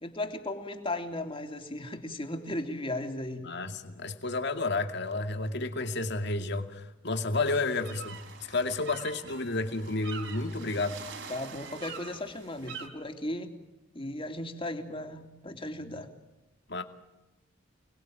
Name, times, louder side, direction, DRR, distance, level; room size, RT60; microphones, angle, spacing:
voice 1, 0.0-3.4 11.3-13.5 13.9-16.1, left 1 dB, 30° left, 5 dB, 3.3 m, -36 dB
voice 2, 3.4-8.2 8.5-11.0 16.7-16.8, left 3 dB, 60° left, 7 dB, 2.3 m, -31 dB
sound 1, 7.4-12.9, right 5 dB, 65° right, 4.5 m, -45 dB
29.5 x 21.0 x 9.1 m, 1.1 s
head